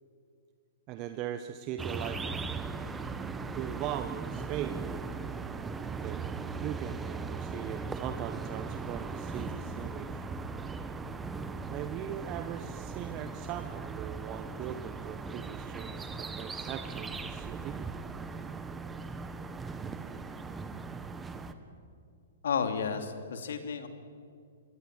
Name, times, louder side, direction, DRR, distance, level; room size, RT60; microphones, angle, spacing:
voice 1, 0.9-2.2 3.5-4.9 6.0-6.2 6.6-10.2 11.7-17.8, right 11 dB, 35° right, 9 dB, 1.1 m, -40 dB
sound 1, 1.8-21.5, right 4 dB, 10° right, 1.5 m, -38 dB
voice 2, 22.4-23.9, left 6 dB, 65° left, 7 dB, 2.9 m, -32 dB
27.0 x 22.0 x 7.9 m, 2.3 s
figure-of-eight pair, 115°, 0 cm